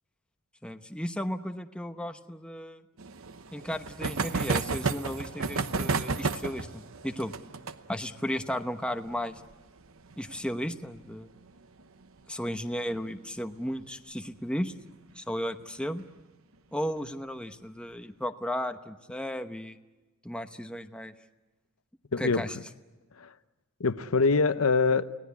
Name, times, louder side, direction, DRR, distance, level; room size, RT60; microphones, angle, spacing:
voice 1, 0.6-2.8 3.5-7.3 7.9-9.3 10.2-11.3 12.3-14.7 15.2-16.0 16.7-19.8 20.2-21.1 22.2-22.6, equal, 5° left, 0.9 m, -34 dB
sound 1, 3.0-12.2 12.5-12.6 12.8-12.9 13.2-13.3 14.7-14.9 15.6-16.0, right 4 dB, 70° right, 0.9 m, -33 dB
voice 2, 22.1-22.4 23.2-23.3 23.8-25.1, left 4 dB, 85° left, 0.8 m, -24 dB
30.0 x 18.5 x 8.4 m
head